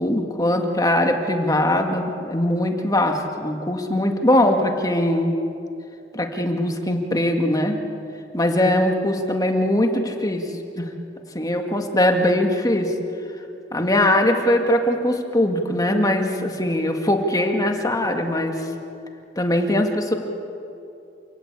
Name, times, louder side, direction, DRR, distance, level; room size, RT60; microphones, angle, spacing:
voice 1, 0.0-5.3 6.1-7.8 8.3-10.4 10.8-10.9 11.3-12.9 13.7-18.6 19.4-20.1, left 1 dB, 20° left, 4 dB, 2.0 m, -21 dB
28.5 x 17.5 x 8.4 m, 2.6 s
head